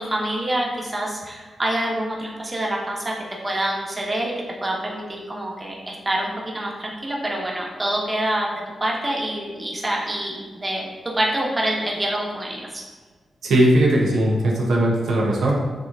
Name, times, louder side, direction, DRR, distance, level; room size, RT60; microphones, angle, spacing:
voice 1, 0.0-3.2 3.4-8.5 8.8-12.8, right 1 dB, 25° right, -2 dB, 1.0 m, -26 dB
voice 2, 13.4-15.5, right 1 dB, 90° right, -2 dB, 0.7 m, -18 dB
6.8 x 3.0 x 2.4 m, 1.4 s
cardioid pair, 75°, 0 cm